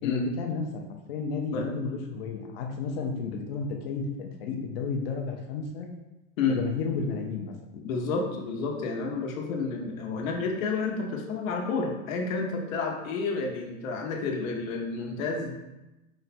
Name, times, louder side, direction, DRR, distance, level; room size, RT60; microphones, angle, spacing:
voice 1, 0.0-0.8 1.1-5.9 6.5-7.5, left 5 dB, 45° left, 3 dB, 0.6 m, -32 dB
voice 2, 7.8-15.6, left 4 dB, 75° left, 1 dB, 0.9 m, -30 dB
4.9 x 2.2 x 4.1 m, 1.0 s
supercardioid pair, 175°, 40 cm